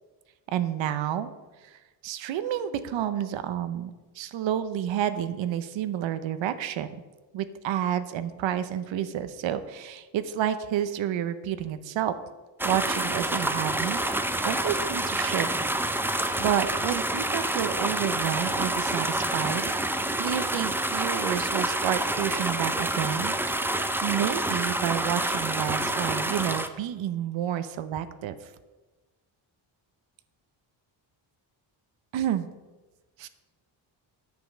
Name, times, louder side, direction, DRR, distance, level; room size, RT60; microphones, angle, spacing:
voice 1, 0.5-1.3 1.6-1.8 2.0-6.9 7.3-12.1 12.6-15.5 16.4-19.7 20.2-28.3 32.1-32.5 33.2-33.3, right 10 dB, 75° right, 11 dB, 0.7 m, -30 dB
sound 1, 12.6-26.7, right 1 dB, 5° right, 0.4 m, -28 dB
9.1 x 5.2 x 7.2 m, 1.2 s
cardioid pair, 135°, 46 cm